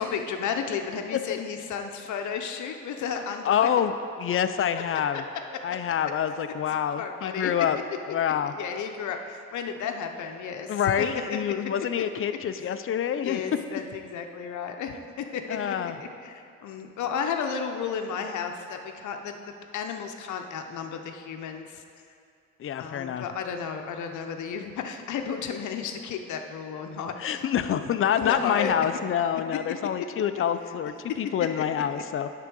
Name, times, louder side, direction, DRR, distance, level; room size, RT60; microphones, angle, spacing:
voice 1, 0.0-3.7 5.1-5.2 5.5-5.8 7.0-7.5 8.5-11.1 12.6-12.7 13.2-21.8 22.8-27.4 28.2-28.7 30.3-30.4 31.9-32.0, left 7 dB, 75° left, 5 dB, 0.8 m, -33 dB
voice 2, 3.4-5.2 5.6-7.8 8.1-8.5 10.7-13.4 15.5-16.0 22.6-23.3 27.2-32.3, left 9 dB, 45° left, 10 dB, 0.5 m, -27 dB
10.0 x 3.8 x 6.2 m, 2.4 s
cardioid pair, 90°, 30 cm